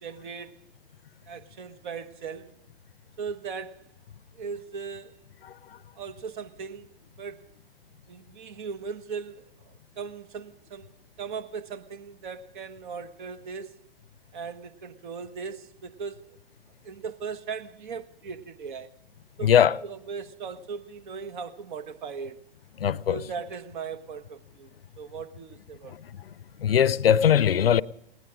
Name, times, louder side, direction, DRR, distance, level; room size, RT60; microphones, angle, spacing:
voice 1, 0.0-0.6 1.2-2.5 3.2-3.9 4.3-5.2 6.0-7.5 8.1-10.9 11.2-13.8 14.3-16.4 16.8-18.9 19.4-22.4 23.1-25.9, right 5 dB, 50° right, 1.4 m, -38 dB
voice 2, 19.4-19.8 22.8-23.2 26.6-27.8, left 9 dB, 70° left, 0.7 m, -20 dB
19.0 x 19.0 x 3.7 m
figure-of-eight pair, 120°, 30 cm